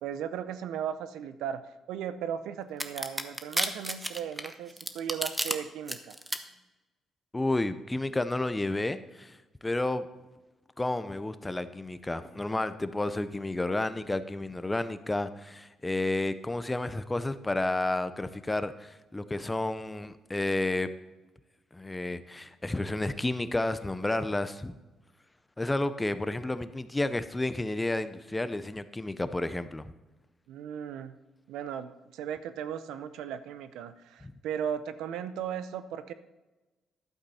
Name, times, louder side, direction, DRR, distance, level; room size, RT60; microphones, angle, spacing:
voice 1, 0.0-1.6 1.9-6.2 30.5-31.2 31.5-36.1, right 9 dB, 90° right, 12 dB, 0.6 m, -36 dB
sound 1, 2.8-5.5 5.9-6.4, right 1 dB, 10° right, 0.9 m, -31 dB
voice 2, 7.3-10.1 10.8-20.9 21.7-24.7 25.6-29.9 34.2-34.3, left 2 dB, 15° left, 12 dB, 0.7 m, -31 dB
12.0 x 8.0 x 4.2 m, 1.1 s
cardioid pair, 90°, 0 cm